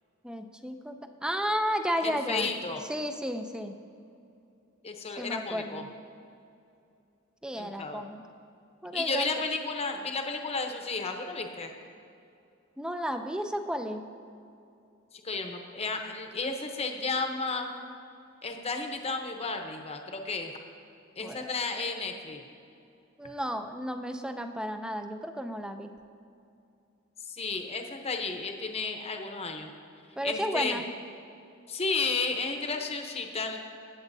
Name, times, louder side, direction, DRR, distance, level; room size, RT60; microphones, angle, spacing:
voice 1, 0.2-2.5 2.9-3.8 5.2-5.9 7.4-8.2 8.8-9.3 12.8-14.0 21.2-21.5 23.2-25.9 30.2-30.9, equal, 5° right, 7 dB, 0.5 m, -33 dB
voice 2, 2.0-2.8 4.8-5.8 7.6-8.0 8.9-11.7 15.2-17.7 18.4-20.5 21.2-22.4 27.3-29.7 30.2-30.8 31.7-33.6, left 4 dB, 30° left, 4 dB, 0.9 m, -32 dB
20.0 x 8.0 x 2.7 m, 2.6 s
head